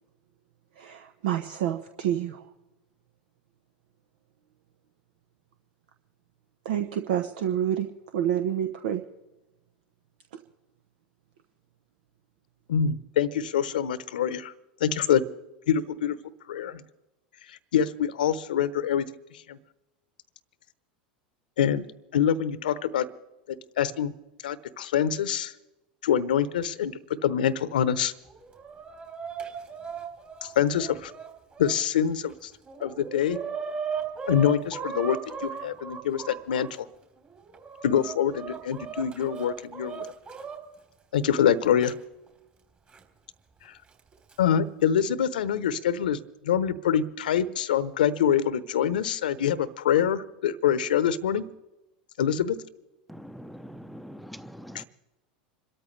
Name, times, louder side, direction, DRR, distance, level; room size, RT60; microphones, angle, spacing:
voice 1, 0.8-2.5 6.6-7.9 8.1-9.0 10.3-10.4, right 10 dB, 70° right, 1.0 m, -28 dB
voice 2, 12.7-14.5 14.8-15.2 15.7-16.2 16.5-16.8 17.5-19.1 19.5-19.6 21.6-21.9 22.1-23.1 23.8-24.1 24.4-25.5 26.0-28.1 30.4-31.1 31.6-32.5 32.8-33.4 34.3-36.8 37.8-40.1 41.1-41.9 43.7-43.8 44.4-46.2 46.4-51.4 52.2-52.6 54.7-54.8, left 9 dB, 80° left, 0.9 m, -25 dB
Chicken rooster, 28.3-31.7 32.3-32.4 32.7-36.7 37.3-40.6 41.8-41.9 42.9-43.0 44.0-44.3, right 6 dB, 30° right, 3.8 m, -37 dB
voice 3, 53.1-54.8, equal, ahead, 0.8 m, -43 dB
26.5 x 13.5 x 3.3 m
hypercardioid pair, 90°, 5 cm